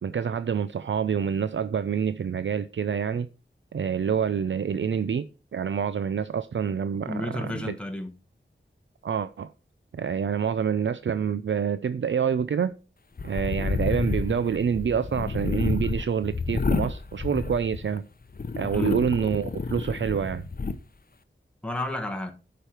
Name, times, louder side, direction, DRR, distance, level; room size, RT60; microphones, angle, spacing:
voice 1, 0.0-3.3 3.7-7.7 9.0-9.5 9.9-12.7 13.2-18.0 18.6-20.5, right 7 dB, 70° right, 0.5 m, -27 dB
voice 2, 7.1-8.1 18.7-19.0 21.6-22.3, left 1 dB, 5° left, 1.4 m, -31 dB
sound 1, 13.2-18.0 18.3-20.7, left 4 dB, 50° left, 0.7 m, -30 dB
11.5 x 5.1 x 4.4 m
wide cardioid pair, 55°, 20 cm